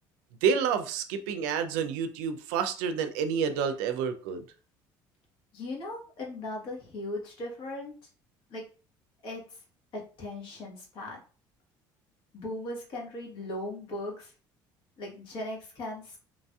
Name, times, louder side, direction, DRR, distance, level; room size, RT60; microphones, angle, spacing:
voice 1, 0.4-4.4, right 7 dB, 85° right, 9 dB, 0.4 m, -29 dB
voice 2, 5.5-7.9 8.5-8.6 9.2-9.6 9.9-11.2 12.3-14.3 15.0-16.2, left 1 dB, 60° left, -1 dB, 1.3 m, -38 dB
2.9 x 2.6 x 2.3 m, 0.37 s
supercardioid pair, 85°, 10 cm